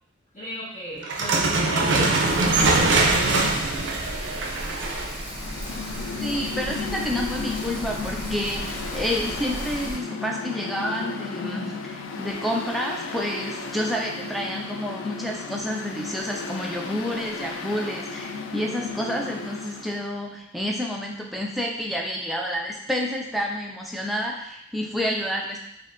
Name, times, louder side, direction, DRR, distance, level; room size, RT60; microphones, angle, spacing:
voice 1, 0.3-3.5, left 1 dB, 35° left, -11 dB, 0.9 m, -35 dB
sound 1, 1.0-5.2, right 3 dB, 65° right, 0.5 m, -22 dB
Rain, 2.3-9.9, equal, 30° right, 1.0 m, -35 dB
Mechanical fan, 5.2-20.0, left 4 dB, 85° left, 0.4 m, -34 dB
voice 2, 6.2-25.6, equal, ahead, -2 dB, 0.4 m, -29 dB
4.1 x 2.8 x 2.5 m, 0.77 s
head